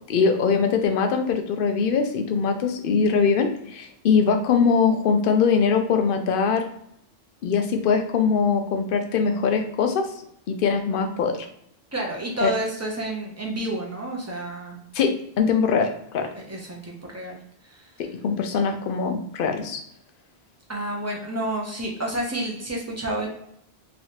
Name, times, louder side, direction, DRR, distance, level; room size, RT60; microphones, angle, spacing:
voice 1, 0.1-6.6 7.4-10.1 10.5-11.5 12.4-12.5 14.9-16.3 18.2-19.8, left 5 dB, 65° left, 6 dB, 0.7 m, -22 dB
voice 2, 11.9-14.8 16.5-17.4 17.6-17.9 20.7-23.3, right 1 dB, 20° right, -1 dB, 0.6 m, -30 dB
3.2 x 2.8 x 2.8 m, 0.74 s
omnidirectional pair, 1.1 m